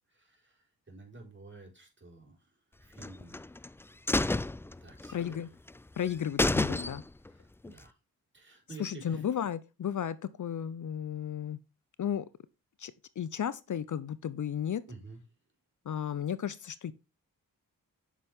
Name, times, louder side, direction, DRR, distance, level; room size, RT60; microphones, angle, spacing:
voice 1, 0.1-2.4 2.8-3.5 4.8-5.4 7.3-7.9 8.3-9.2 14.9-15.2, right 3 dB, 30° right, 4.5 m, -51 dB
sound 1, 3.0-3.7 4.1-5.4 5.7-5.8 6.1-6.2 6.4-7.3 7.6-7.7, left 2 dB, 5° left, 0.3 m, -30 dB
voice 2, 5.1-5.5 6.0-7.0 8.8-11.6 12.0-12.2 12.8-14.8 15.9-16.9, left 9 dB, 55° left, 0.7 m, -34 dB
8.3 x 6.1 x 3.5 m
cardioid pair, 70°, 36 cm